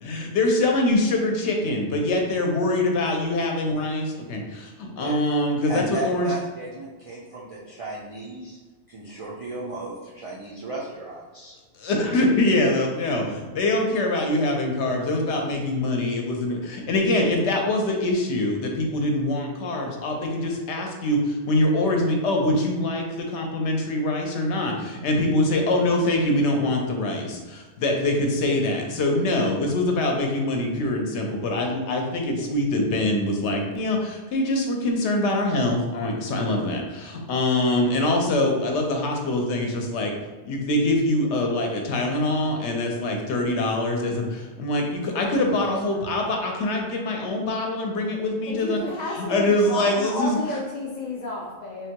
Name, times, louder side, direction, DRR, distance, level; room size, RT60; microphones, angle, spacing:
voice 1, 0.0-6.3 11.8-40.2 40.4-48.8 49.1-50.4, left 1 dB, 80° left, 2 dB, 0.9 m, -24 dB
voice 2, 5.7-8.6 8.9-11.6, right 3 dB, 60° right, -5 dB, 0.3 m, -34 dB
voice 3, 45.1-46.1 48.5-51.9, left 2 dB, 60° left, -2 dB, 0.4 m, -32 dB
3.5 x 2.2 x 2.8 m, 1.2 s
omnidirectional pair, 1.2 m